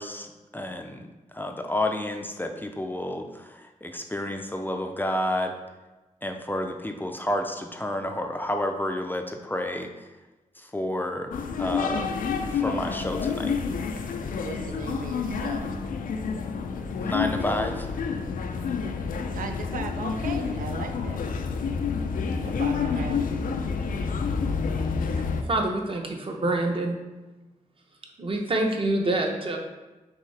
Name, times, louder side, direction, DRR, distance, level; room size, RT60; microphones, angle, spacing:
voice 1, 0.0-5.5 6.2-10.1 10.6-11.3 11.6-12.1 12.5-13.6 17.0-17.9, left 1 dB, 15° left, 4 dB, 0.4 m, -30 dB
sound 1, 11.3-25.4, left 5 dB, 85° left, 0.4 m, -29 dB
voice 2, 14.4-15.7 19.3-21.2 22.4-23.2, right 5 dB, 85° right, 6 dB, 0.4 m, -37 dB
voice 3, 25.0-27.0 28.2-29.6, right 2 dB, 40° right, 2 dB, 0.8 m, -27 dB
5.8 x 2.7 x 3.3 m, 1.1 s
wide cardioid pair, 90°, 14 cm